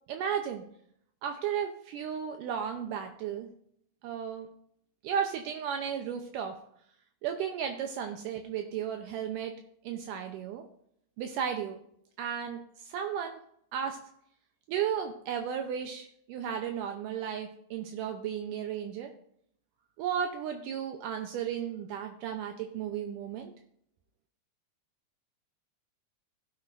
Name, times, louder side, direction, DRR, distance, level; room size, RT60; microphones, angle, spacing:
voice 1, 0.1-0.6 1.2-3.5 4.0-4.5 5.0-6.6 7.2-9.5 9.8-10.6 11.2-11.8 12.2-12.6 12.9-13.4 13.7-14.0 14.7-19.1 20.0-23.5, right 8 dB, 80° right, 4 dB, 2.2 m, -34 dB
16.0 x 7.3 x 2.5 m, 0.67 s
omnidirectional pair, 3.9 m